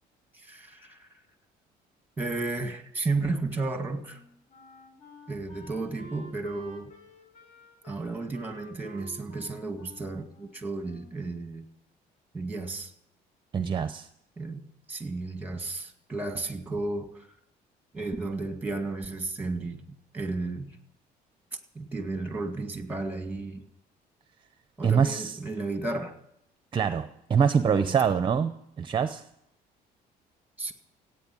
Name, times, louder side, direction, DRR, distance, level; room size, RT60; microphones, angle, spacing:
voice 1, 0.3-1.1 2.2-4.2 5.3-6.9 7.8-11.7 12.3-12.9 14.4-17.3 17.9-20.8 21.8-23.7 24.8-26.2 27.7-28.0 30.6-30.7, right 3 dB, 10° right, 7 dB, 1.9 m, -33 dB
Wind instrument woodwind instrument, 4.0-11.3, equal, 45° left, 5.7 m, -51 dB
voice 2, 13.5-14.1 24.8-25.4 26.7-28.5 28.8-29.2, right 7 dB, 30° right, 11 dB, 0.7 m, -24 dB
16.0 x 8.9 x 8.8 m, 0.79 s
cardioid pair, 110°, 17 cm